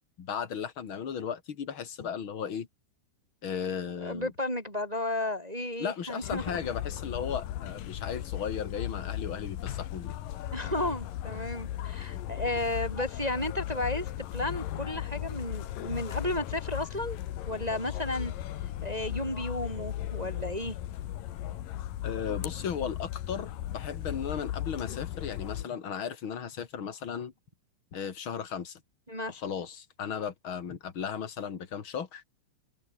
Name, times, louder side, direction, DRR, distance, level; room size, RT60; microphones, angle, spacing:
voice 1, 0.2-2.7 3.4-4.3 5.8-10.2 22.0-27.3 27.9-28.8 29.3-32.2, left 7 dB, 45° left, 1.9 m, -36 dB
voice 2, 4.0-6.6 10.5-17.2 17.5-18.3 18.8-20.7 29.1-29.4, left 1 dB, 10° right, 3.1 m, -33 dB
sound 1, 6.2-25.6, left 13 dB, 65° left, 2.4 m, -37 dB
open air
omnidirectional pair, 5.3 m